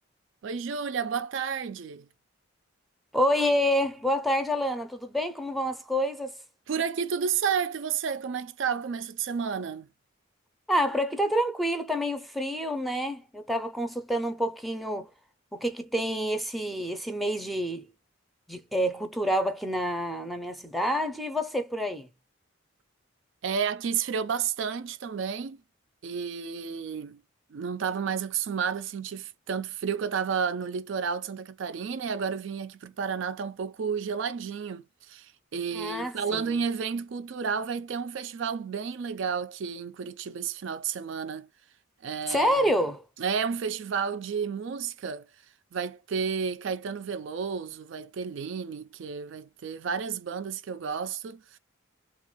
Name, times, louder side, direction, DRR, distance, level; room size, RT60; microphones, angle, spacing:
voice 1, 0.4-2.1 6.7-9.9 23.4-25.6 26.0-27.2 27.5-41.5 42.0-42.7 43.2-45.3 45.7-51.6, right 6 dB, 65° right, 0.4 m, -31 dB
voice 2, 3.1-6.4 10.7-15.1 15.5-17.9 18.5-22.1 35.7-36.6 42.3-43.0, equal, ahead, 0.5 m, -28 dB
3.4 x 2.4 x 2.9 m
head